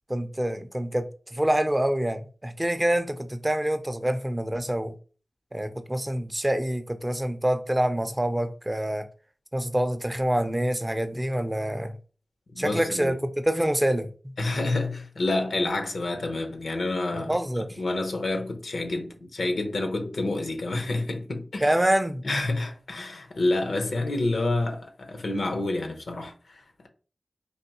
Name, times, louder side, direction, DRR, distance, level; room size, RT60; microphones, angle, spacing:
voice 1, 0.1-4.9 5.5-9.1 9.5-12.0 12.6-14.3 17.3-17.8 21.6-22.2, right 1 dB, 15° right, 0.4 m, -26 dB
voice 2, 12.5-13.2 14.4-21.7 22.2-26.9, left 2 dB, 85° left, 0.7 m, -28 dB
3.4 x 2.5 x 2.8 m
wide cardioid pair, 55°, 0 cm